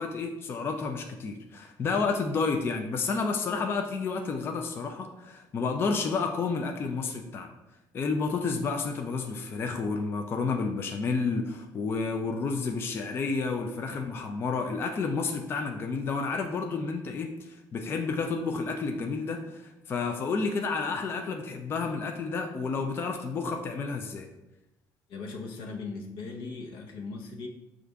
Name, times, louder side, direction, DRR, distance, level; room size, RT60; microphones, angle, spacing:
voice 1, 0.0-7.5 7.9-24.3, left 4 dB, 30° left, 4 dB, 0.3 m, -30 dB
voice 2, 25.1-27.5, left 4 dB, 80° left, 1 dB, 0.8 m, -38 dB
6.3 x 2.5 x 3.4 m, 0.98 s
cardioid pair, 175°, 8 cm